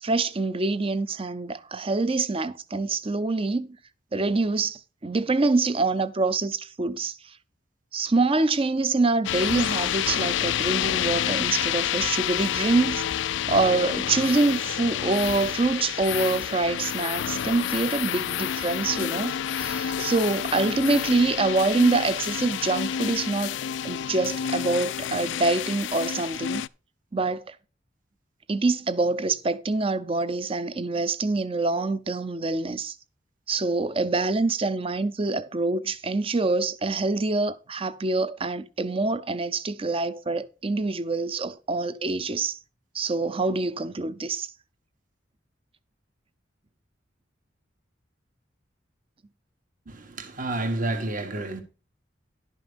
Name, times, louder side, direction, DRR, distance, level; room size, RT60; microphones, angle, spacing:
voice 1, 0.0-3.8 4.1-7.1 7.9-13.0 13.5-23.6 23.8-26.6 27.1-27.6 28.5-32.9 33.5-42.6 42.9-44.5, right 3 dB, 30° right, 0.6 m, -25 dB
sound 1, 9.2-26.7, left 10 dB, 75° left, 0.4 m, -29 dB
voice 2, 49.9-51.6, right 2 dB, 45° right, 1.6 m, -30 dB
11.5 x 5.5 x 5.2 m
head